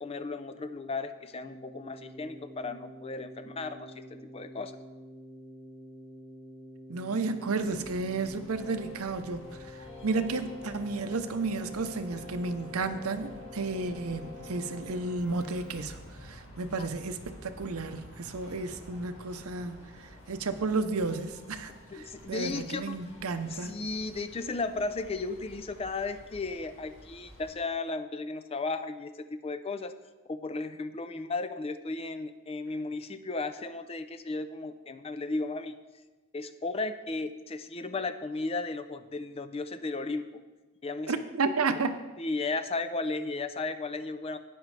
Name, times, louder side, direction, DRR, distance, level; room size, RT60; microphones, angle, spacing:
voice 1, 0.0-4.7 16.8-16.9 21.9-23.0 23.5-30.0 30.3-35.8 36.3-40.2 40.8-41.1 42.2-44.4, left 3 dB, 25° left, 11 dB, 0.4 m, -35 dB
Keyboard (musical), 1.4-16.5, left 1 dB, 5° left, 1.5 m, -47 dB
voice 2, 6.9-9.4 10.0-19.9 20.3-23.8 41.1-42.0, right 3 dB, 80° right, 9 dB, 0.7 m, -32 dB
sound 1, 7.6-27.5, equal, 60° left, 1.8 m, -51 dB
12.5 x 9.3 x 3.3 m, 1.2 s
head